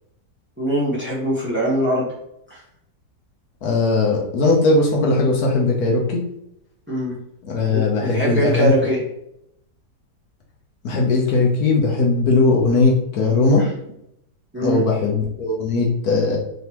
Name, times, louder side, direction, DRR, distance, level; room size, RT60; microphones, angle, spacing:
voice 1, 0.6-2.1 2.5-2.6 6.9-7.2 7.7-9.0 13.6-13.7 14.5-14.8, right 1 dB, 10° right, -5 dB, 1.0 m, -22 dB
voice 2, 3.6-6.2 7.4-8.7 10.8-13.6 14.6-16.4, left 3 dB, 65° left, -1 dB, 1.2 m, -18 dB
3.8 x 3.7 x 2.9 m, 0.79 s
omnidirectional pair, 1.8 m